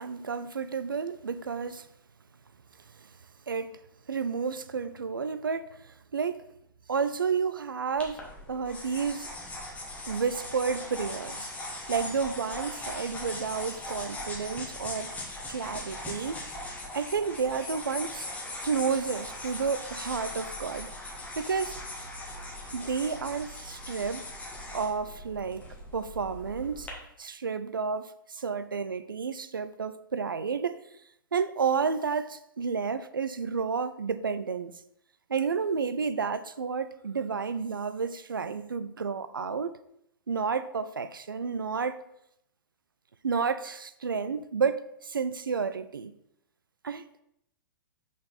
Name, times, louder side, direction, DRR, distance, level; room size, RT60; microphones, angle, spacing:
voice 1, 0.0-1.9 3.0-3.1 3.5-3.8 4.1-6.5 6.9-8.2 8.5-9.3 10.1-11.5 11.9-15.1 15.5-16.4 16.9-18.3 18.6-20.9 21.4-21.8 22.7-24.3 24.7-25.6 25.9-26.9 27.2-30.8 31.3-34.8 35.3-39.8 40.3-42.0 43.2-46.1 46.8-47.2, right 5 dB, 75° right, 0.4 m, -31 dB
sound 1, 8.0-26.9, left 1 dB, 10° left, 1.3 m, -40 dB
5.8 x 4.5 x 4.0 m
figure-of-eight pair, 105°, 11 cm